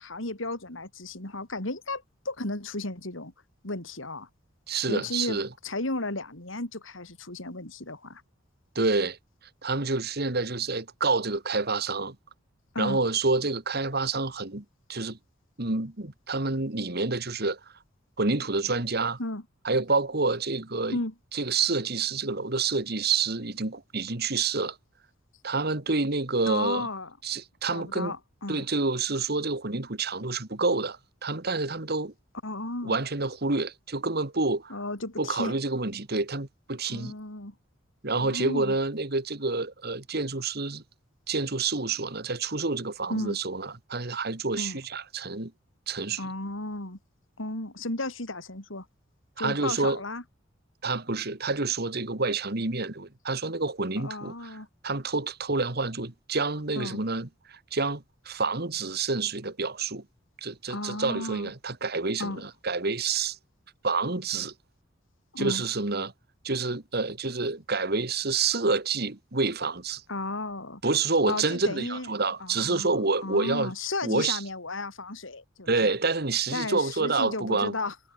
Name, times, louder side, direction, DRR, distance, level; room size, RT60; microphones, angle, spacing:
voice 1, 0.0-3.3 3.6-4.3 4.9-5.4 5.6-8.2 12.7-13.0 19.2-19.4 20.9-21.1 26.5-27.1 27.7-28.7 32.4-33.0 34.7-35.5 36.9-37.5 38.2-38.7 43.1-43.4 44.6-44.8 46.2-47.0 47.4-48.9 49.4-50.2 54.0-54.7 56.8-57.0 60.7-61.5 62.2-62.4 65.3-65.6 70.1-70.8 71.3-72.1 72.4-75.9 76.5-77.9, left 2 dB, 85° left, 4.6 m, -34 dB
voice 2, 4.7-5.5 8.8-9.2 9.6-12.2 12.8-14.6 14.9-15.2 15.6-17.6 18.2-19.2 19.6-21.0 21.3-24.8 25.4-26.9 27.2-28.1 28.5-32.1 32.8-34.8 35.2-37.1 38.0-40.8 41.3-45.5 45.9-46.3 49.4-50.0 50.8-54.6 54.8-60.0 60.4-63.4 63.8-64.5 65.4-66.1 66.4-70.0 70.8-73.7 74.0-74.4 75.7-77.7, right 3 dB, 55° right, 2.1 m, -28 dB
head